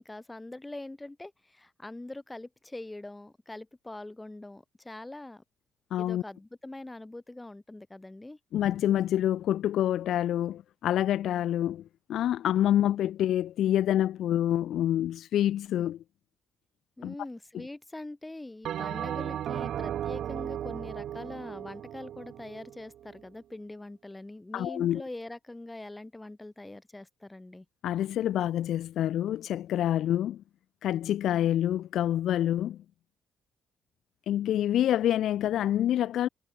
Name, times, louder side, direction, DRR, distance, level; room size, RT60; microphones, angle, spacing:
voice 1, 0.0-5.4 6.0-8.4 17.0-27.7, left 2 dB, 15° left, 7.7 m, -43 dB
voice 2, 5.9-6.2 8.5-11.8 12.1-16.0 17.0-17.1 24.5-25.0 27.8-30.4 30.8-32.8 34.3-36.3, left 11 dB, 75° left, 1.6 m, -27 dB
Bell, 18.6-23.2, right 10 dB, 70° right, 5.1 m, -36 dB
cardioid pair, 90°, 0 cm